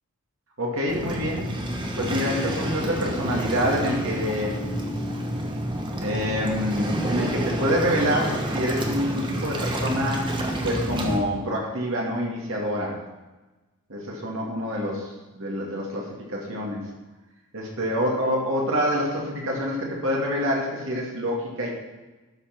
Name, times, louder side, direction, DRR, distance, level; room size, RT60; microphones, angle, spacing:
voice 1, 0.6-1.5 2.0-4.6 6.0-10.3 10.6-13.0 13.9-16.8 17.5-21.7, equal, 60° right, -2 dB, 2.3 m, -26 dB
Waves surf, 0.9-11.2, equal, 20° right, 1.2 m, -29 dB
12.0 x 5.6 x 6.1 m, 1.1 s
head